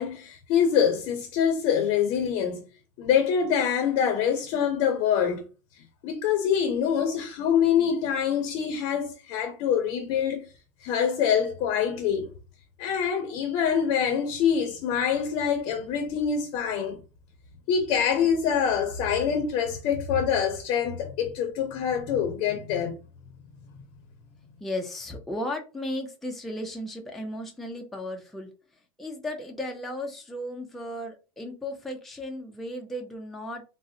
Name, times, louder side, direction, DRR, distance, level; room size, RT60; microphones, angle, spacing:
voice 1, 0.0-2.6 3.0-5.4 5.7-10.5 10.8-12.3 12.8-17.0 17.7-23.0, left 8 dB, 55° left, 0.5 m, -25 dB
voice 2, 24.6-28.5 29.0-33.6, left 1 dB, ahead, 0.4 m, -35 dB
3.6 x 2.0 x 2.6 m
cardioid pair, 155°, 9 cm